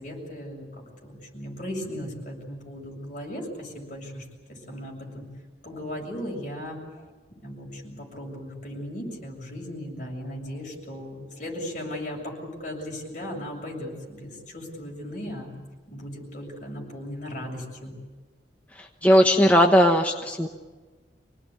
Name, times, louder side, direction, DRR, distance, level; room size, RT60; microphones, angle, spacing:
voice 1, 0.0-5.2 5.6-7.1 7.4-15.5 15.9-17.9, equal, 50° left, -1 dB, 7.4 m, -37 dB
voice 2, 18.7-20.5, equal, 10° left, 2 dB, 1.1 m, -18 dB
26.0 x 19.0 x 9.6 m, 1.3 s
head